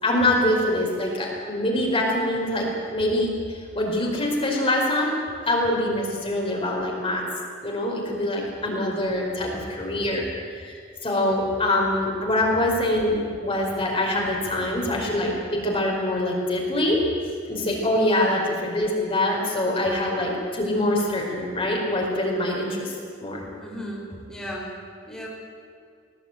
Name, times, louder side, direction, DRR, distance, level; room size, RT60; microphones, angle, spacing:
voice 1, 0.0-5.1 5.4-7.3 7.6-10.2 10.6-17.0 17.5-23.4, left 1 dB, 30° left, -1 dB, 4.8 m, -24 dB
voice 2, 23.5-24.7 25.1-25.3, equal, 5° left, -4 dB, 4.3 m, -36 dB
19.5 x 19.0 x 9.2 m, 2.2 s
head